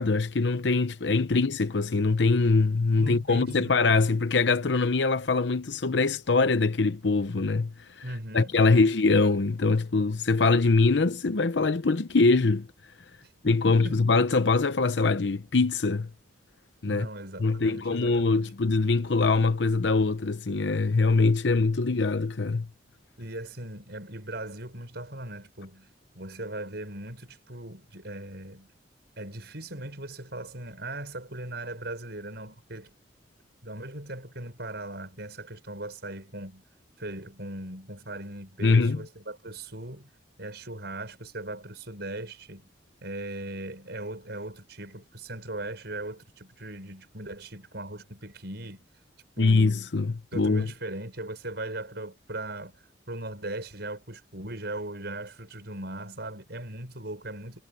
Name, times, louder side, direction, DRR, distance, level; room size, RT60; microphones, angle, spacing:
voice 1, 0.0-8.0 8.3-12.7 13.4-16.1 16.8-17.1 17.4-22.7 38.6-39.0 49.4-50.7, left 3 dB, 70° left, 0.7 m, -23 dB
voice 2, 3.0-3.8 8.0-9.0 13.2-13.3 13.6-14.1 16.9-18.5 23.2-25.9 26.1-28.7 29.2-32.9 33.6-36.6 37.0-40.1 40.4-42.7 43.0-48.8 49.4-49.8 50.3-57.6, right 1 dB, 65° right, 6.9 m, -39 dB
head